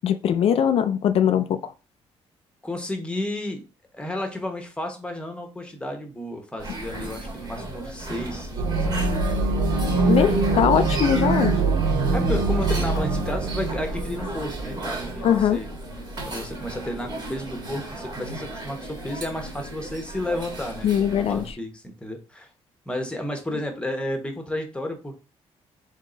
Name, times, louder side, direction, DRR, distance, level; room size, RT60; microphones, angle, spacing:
voice 1, 0.0-1.7 10.1-11.5 15.2-15.6 20.8-21.4, left 9 dB, 60° left, 0.4 m, -21 dB
voice 2, 2.6-3.6 3.9-9.0 9.7-10.2 12.1-15.7 16.3-22.5 22.9-25.1, left 1 dB, 10° left, 1.1 m, -32 dB
sound 1, 6.6-21.5, right 1 dB, 40° right, 1.5 m, -35 dB
sound 2, 8.6-15.2, right 3 dB, 80° right, 1.2 m, -23 dB
3.7 x 3.6 x 3.8 m
cardioid pair, 115°, 11 cm